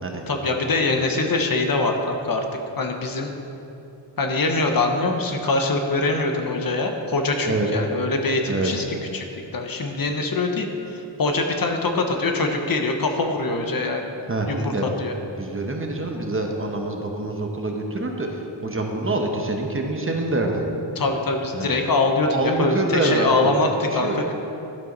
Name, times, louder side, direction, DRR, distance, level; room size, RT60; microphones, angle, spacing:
voice 1, 0.3-2.4 2.8-3.3 4.2-8.8 9.1-9.3 9.5-14.1 14.5-15.1 21.0-24.3, left 3 dB, 50° left, 3 dB, 0.9 m, -23 dB
voice 2, 14.3-14.9 15.4-20.6 21.5-21.8 22.3-24.2, right 2 dB, 30° right, 1 dB, 0.9 m, -26 dB
11.5 x 8.1 x 3.9 m, 2.9 s
wide cardioid pair, 150°, 45 cm